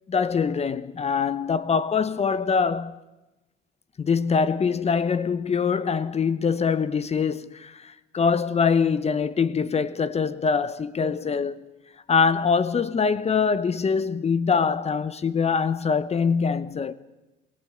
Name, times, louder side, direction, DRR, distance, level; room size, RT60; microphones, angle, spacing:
voice 1, 0.1-3.0 4.0-11.6 12.1-16.9, left 5 dB, 30° left, 0.9 m, -23 dB
22.0 x 16.5 x 7.9 m
supercardioid pair, 85°, 20 cm